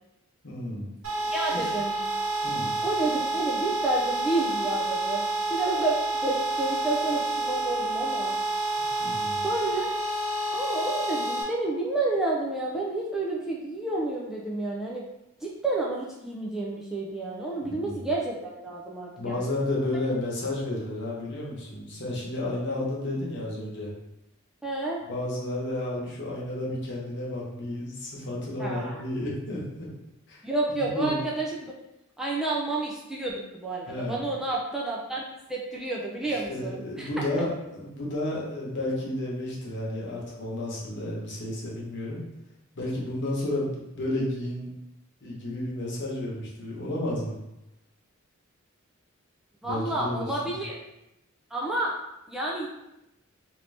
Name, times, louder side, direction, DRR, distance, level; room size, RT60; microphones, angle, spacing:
voice 1, 0.4-0.9 1.5-1.7 2.4-2.8 9.0-9.5 17.7-18.0 19.2-23.9 25.1-29.9 30.3-30.4 30.7-31.2 33.9-34.2 36.5-42.2 42.7-44.7 45.2-47.4 49.6-50.6, left 1 dB, 55° left, -4 dB, 1.0 m, -32 dB
sound 1, 1.0-11.4, right 2 dB, 75° right, 1.2 m, -29 dB
voice 2, 1.3-2.0 2.8-5.2 5.5-8.4 9.4-9.9 10.5-15.0 15.4-19.5 24.6-25.0 28.6-29.0 30.4-31.8 32.2-35.2 35.5-37.1 49.6-50.8 51.5-51.9 52.3-52.7, right 2 dB, ahead, -4 dB, 0.3 m, -30 dB
2.8 x 2.6 x 3.2 m, 0.88 s
head